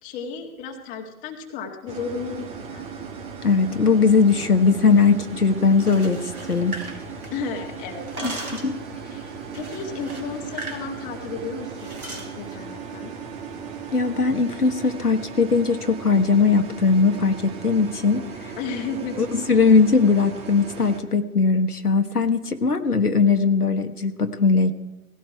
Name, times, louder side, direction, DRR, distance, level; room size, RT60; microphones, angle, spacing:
voice 1, 0.0-2.9 7.3-8.5 9.0-13.1 18.5-19.4, left 5 dB, 20° left, 2 dB, 1.8 m, -34 dB
sound 1, 1.9-21.0, right 6 dB, 15° right, 1.3 m, -37 dB
voice 2, 3.4-6.8 8.2-8.8 13.9-18.3 19.2-24.7, left 4 dB, 80° left, 7 dB, 1.4 m, -19 dB
sound 2, 5.8-7.6 7.9-8.8 9.5-10.9 11.1-11.3 11.8-12.3, right 2 dB, 75° right, 3.8 m, -37 dB
19.0 x 16.0 x 4.7 m, 0.98 s
figure-of-eight pair, 125°, 45 cm